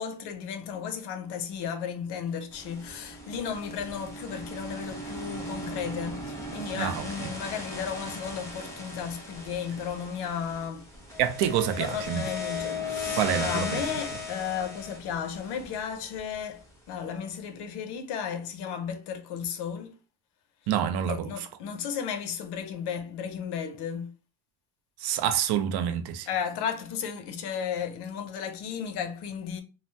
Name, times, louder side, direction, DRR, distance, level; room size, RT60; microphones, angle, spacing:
voice 1, 0.0-10.9 11.8-19.9 21.1-24.1 26.3-29.6, left 7 dB, 65° left, 0.6 m, -34 dB
sound 1, 2.5-16.7, left 3 dB, 5° left, 0.6 m, -37 dB
voice 2, 6.8-7.3 11.2-12.3 13.2-13.8 20.7-21.5 25.0-26.3, right 9 dB, 65° right, 0.5 m, -27 dB
3.2 x 2.0 x 2.7 m
cardioid pair, 170°, 43 cm